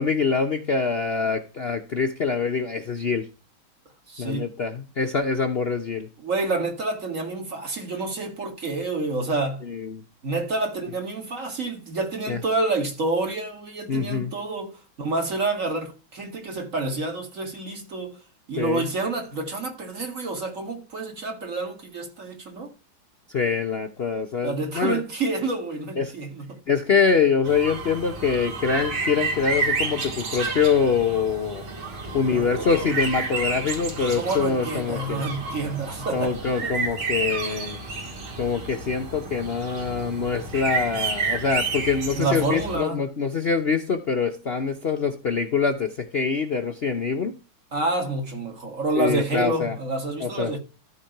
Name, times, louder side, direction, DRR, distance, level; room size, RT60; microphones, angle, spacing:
voice 1, 0.0-3.3 4.2-6.1 9.6-10.0 12.3-12.4 13.9-14.3 18.6-18.9 23.3-25.0 26.0-26.1 26.7-31.6 32.1-35.2 36.1-37.8 38.4-47.3 48.9-49.7 50.2-50.5, left 5 dB, 80° left, 0.5 m, -24 dB
voice 2, 4.1-4.5 6.2-9.6 10.2-18.2 18.5-22.7 24.4-26.6 32.2-32.5 32.8-32.9 34.1-36.3 36.6-36.7 42.1-43.0 47.7-50.6, right 3 dB, 40° right, 2.3 m, -28 dB
sound 1, 27.4-42.8, right 3 dB, 80° right, 3.1 m, -30 dB
14.0 x 4.8 x 4.5 m
omnidirectional pair, 2.3 m